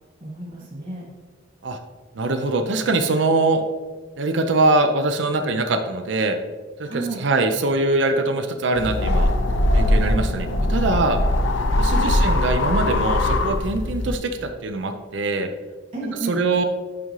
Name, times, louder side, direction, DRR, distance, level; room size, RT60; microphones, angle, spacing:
voice 1, 0.2-1.1 6.8-7.2 11.8-12.2 15.9-16.4, right 3 dB, 45° right, -4 dB, 2.0 m, -31 dB
voice 2, 2.1-3.6 4.2-6.4 6.8-9.3 9.7-11.2 11.8-15.5 16.3-16.6, right 2 dB, 70° right, 7 dB, 0.5 m, -22 dB
sound 1, 8.7-14.1, left 1 dB, 80° left, 0.6 m, -21 dB
10.5 x 3.7 x 3.1 m, 1.4 s
head